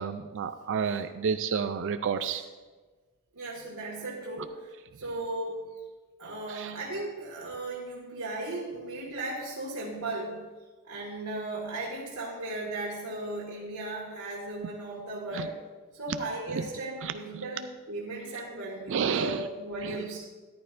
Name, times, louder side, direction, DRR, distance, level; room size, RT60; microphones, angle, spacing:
voice 1, 0.0-2.4 6.5-6.8 15.3-15.5 16.5-16.7 17.0-17.1 18.9-19.5 19.8-20.0, right 6 dB, 60° right, 10 dB, 0.4 m, -30 dB
voice 2, 3.3-5.7 6.2-10.4 10.9-15.5 15.9-20.3, right 2 dB, 90° right, -6 dB, 1.9 m, -36 dB
13.5 x 11.5 x 2.5 m, 1.3 s
head